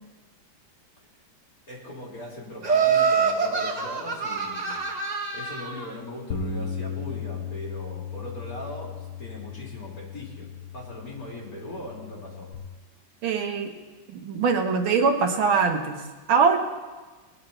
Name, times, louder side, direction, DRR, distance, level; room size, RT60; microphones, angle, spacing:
voice 1, 1.7-4.8 5.3-10.5 10.7-12.5, left 1 dB, 45° left, -4 dB, 4.1 m, -39 dB
Laughter, 2.6-5.8, right 6 dB, 35° right, 0.7 m, -25 dB
Bass guitar, 6.3-12.6, left 6 dB, 85° left, 1.8 m, -36 dB
voice 2, 13.2-13.8 14.1-16.6, right 5 dB, 85° right, 5 dB, 2.0 m, -23 dB
20.0 x 10.5 x 4.4 m, 1.3 s
omnidirectional pair, 2.1 m